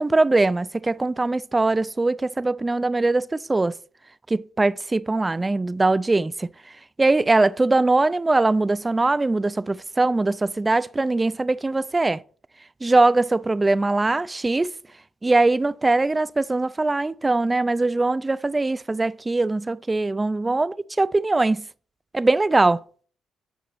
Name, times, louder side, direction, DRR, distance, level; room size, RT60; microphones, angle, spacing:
voice 1, 0.0-3.8 4.3-6.5 7.0-12.2 12.8-14.7 15.2-21.7 22.1-22.8, right 2 dB, 20° right, 0.3 m, -21 dB
9.4 x 4.0 x 4.2 m
cardioid pair, 90°, 0 cm